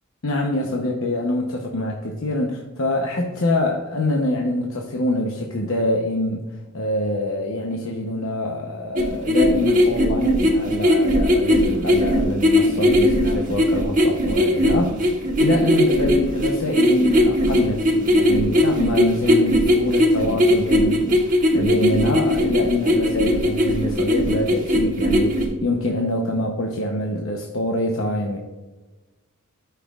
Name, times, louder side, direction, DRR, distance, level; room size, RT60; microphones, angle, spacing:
voice 1, 0.2-6.4 6.7-28.4, left 1 dB, 70° left, 1 dB, 0.8 m, -25 dB
sound 1, 9.0-25.5, left 1 dB, 40° right, 1.3 m, -18 dB
12.0 x 5.7 x 2.4 m, 1.2 s
head